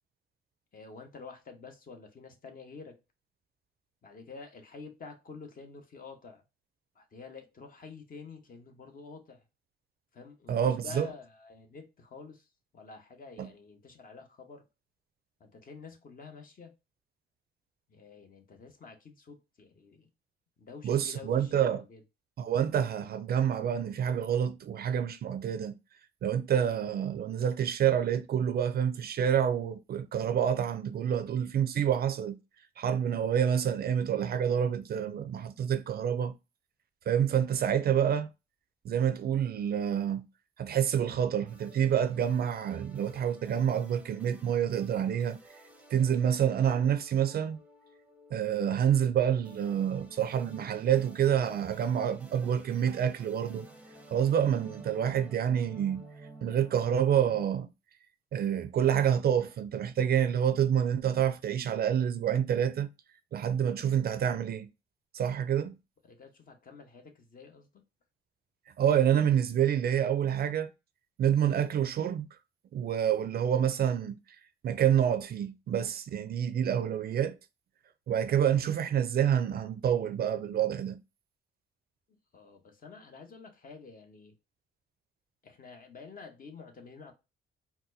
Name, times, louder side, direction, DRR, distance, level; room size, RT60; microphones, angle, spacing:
voice 1, 0.7-3.0 4.0-6.4 6.9-9.4 10.1-14.7 15.4-16.7 17.9-20.1 20.6-22.0 66.0-67.8 82.1-84.4 85.4-87.1, left 4 dB, 45° left, 1.0 m, -49 dB
voice 2, 10.5-11.1 13.4-13.5 20.8-21.8 22.4-25.8 26.2-32.4 32.8-36.3 37.1-38.3 38.8-40.3 40.6-45.4 45.9-47.6 48.3-53.7 54.1-56.0 56.4-57.7 58.3-62.9 63.3-64.7 65.1-65.8 68.8-70.7 71.2-72.3 72.7-74.2 74.6-77.4 78.1-81.0, right 9 dB, 50° right, 0.4 m, -28 dB
sound 1, 41.4-57.5, right 2 dB, 5° right, 0.6 m, -53 dB
4.1 x 2.2 x 2.6 m
cardioid pair, 90°, 20 cm